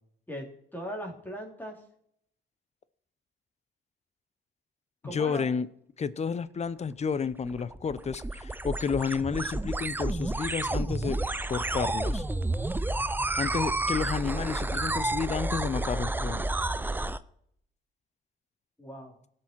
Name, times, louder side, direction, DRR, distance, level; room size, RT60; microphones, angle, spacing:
voice 1, 0.3-1.8 5.0-5.5 18.8-19.2, equal, 10° left, 0 dB, 3.4 m, -39 dB
voice 2, 5.0-5.7 6.0-11.2 11.5-12.2 13.4-16.4, left 6 dB, 35° left, 17 dB, 0.6 m, -31 dB
sound 1, 7.3-17.2, right 2 dB, 10° right, 0.5 m, -30 dB
17.0 x 6.2 x 4.6 m, 0.69 s
cardioid pair, 95°, 20 cm